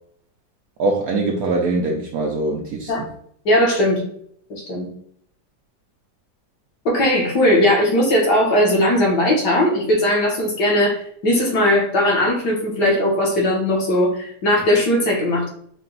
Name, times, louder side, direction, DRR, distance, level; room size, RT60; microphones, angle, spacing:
voice 1, 0.8-3.0, right 2 dB, 70° right, 0 dB, 0.9 m, -22 dB
voice 2, 3.4-4.0 4.5-4.9 6.8-15.5, left 1 dB, 65° left, -1 dB, 1.6 m, -18 dB
4.8 x 2.2 x 3.9 m, 0.66 s
omnidirectional pair, 2.0 m